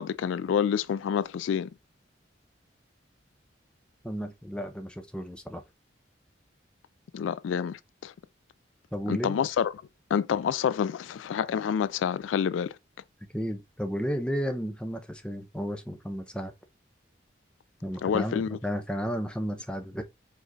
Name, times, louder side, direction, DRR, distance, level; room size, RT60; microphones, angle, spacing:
voice 1, 0.0-1.7 7.1-8.1 9.1-9.7 10.1-12.7 18.0-18.6, left 7 dB, 85° left, 0.3 m, -28 dB
voice 2, 4.0-5.6 8.9-9.4 13.3-16.5 17.8-20.0, equal, 5° left, 0.5 m, -33 dB
5.0 x 2.4 x 3.9 m
head